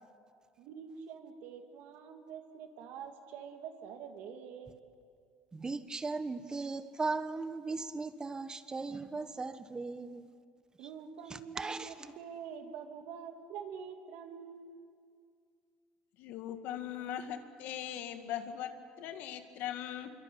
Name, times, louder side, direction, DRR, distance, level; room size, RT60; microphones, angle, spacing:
voice 1, 0.6-4.8 10.8-14.7, right 7 dB, 70° right, 2.6 m, -46 dB
voice 2, 5.5-10.3 11.5-11.9, right 3 dB, 20° right, 1.5 m, -37 dB
voice 3, 16.2-20.1, left 10 dB, 70° left, 2.2 m, -40 dB
26.0 x 23.0 x 8.9 m
supercardioid pair, 95°, 3 cm